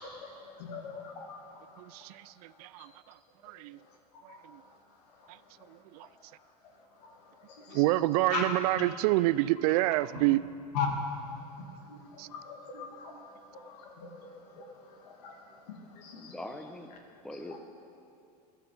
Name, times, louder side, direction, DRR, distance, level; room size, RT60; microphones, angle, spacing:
voice 1, 0.0-2.2 2.5-2.9 3.8-4.8 5.1-6.1 6.7-7.8 8.3-8.4 8.7-8.9 10.2-10.3 10.7-16.4 17.3-17.6, left 4 dB, 75° left, 2 dB, 2.4 m, -41 dB
voice 2, 1.8-2.9 3.4-3.8 4.2-4.6 5.3-5.4 5.7-6.1 7.7-10.4 12.2-12.3, right 18 dB, 65° right, 18 dB, 0.4 m, -28 dB
voice 3, 16.1-16.9 17.2-17.6, left 1 dB, 5° left, 6 dB, 1.0 m, -42 dB
14.5 x 12.5 x 5.4 m, 2.5 s
hypercardioid pair, 100°, 21 cm